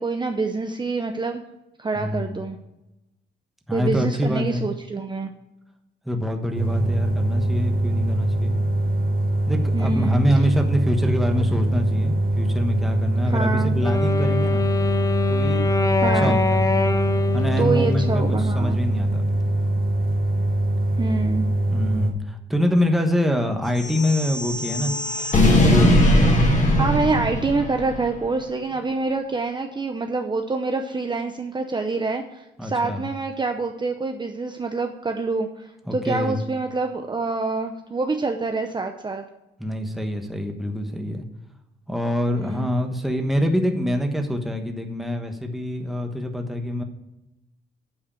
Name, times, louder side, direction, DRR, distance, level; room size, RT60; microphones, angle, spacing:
voice 1, 0.0-1.4 1.8-2.6 3.7-5.3 9.7-10.2 11.3-11.4 13.3-13.7 16.0-16.4 17.6-18.8 21.0-21.5 26.8-39.2 42.3-42.7, right 3 dB, 20° right, 5 dB, 0.7 m, -26 dB
voice 2, 2.0-2.3 3.7-4.6 6.0-8.5 9.5-14.6 15.3-15.7 16.1-16.7 17.3-19.4 21.7-24.9 25.7-26.0 32.6-33.0 35.9-36.4 39.6-41.2 41.9-46.8, equal, ahead, 4 dB, 1.2 m, -25 dB
sound 1, 6.5-22.1, right 1 dB, 50° right, 2.2 m, -23 dB
Wind instrument woodwind instrument, 13.8-18.9, left 4 dB, 15° left, 0.6 m, -25 dB
sound 2, 23.8-28.1, left 1 dB, 35° left, 2.0 m, -19 dB
8.7 x 4.8 x 7.0 m, 0.94 s
cardioid pair, 90°, 20 cm